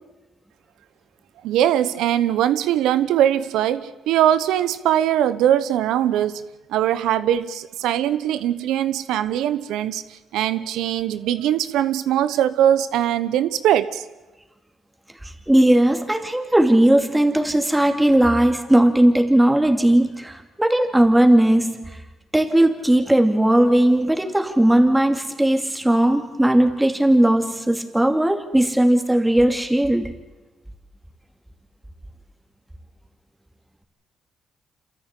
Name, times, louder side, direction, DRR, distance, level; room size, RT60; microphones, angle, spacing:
voice 1, 1.4-6.4 6.7-10.0 10.3-14.0, right 11 dB, 90° right, 13 dB, 1.0 m, -21 dB
voice 2, 15.2-22.0 22.3-30.1, right 1 dB, 10° right, 4 dB, 2.7 m, -18 dB
27.5 x 14.0 x 8.4 m, 1.1 s
cardioid pair, 90°, 0 cm